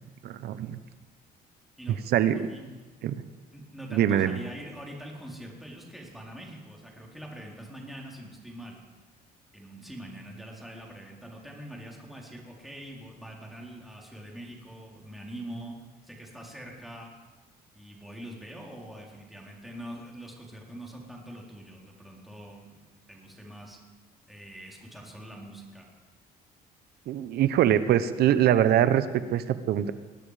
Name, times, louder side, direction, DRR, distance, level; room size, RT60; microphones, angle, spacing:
voice 1, 0.2-0.8 2.1-2.5 3.0-3.2 3.9-4.4 27.1-29.9, right 11 dB, 70° right, 13 dB, 1.0 m, -23 dB
voice 2, 2.3-2.7 3.5-8.8 9.5-15.8 16.0-17.1 17.7-23.8 24.3-25.9, right 1 dB, ahead, -2 dB, 4.0 m, -44 dB
21.0 x 12.0 x 5.1 m, 1.3 s
cardioid pair, 110°, 17 cm